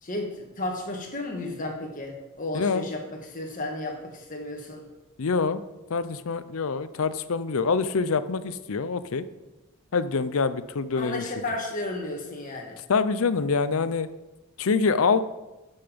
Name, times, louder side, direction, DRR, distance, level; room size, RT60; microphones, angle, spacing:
voice 1, 0.0-4.8 10.9-12.7, left 1 dB, 35° left, 1 dB, 1.7 m, -33 dB
voice 2, 2.5-2.9 5.2-5.6 5.9-9.2 9.9-11.2 12.9-14.1 14.6-15.2, left 4 dB, 70° left, 13 dB, 0.5 m, -25 dB
12.5 x 5.6 x 5.2 m, 1.0 s
head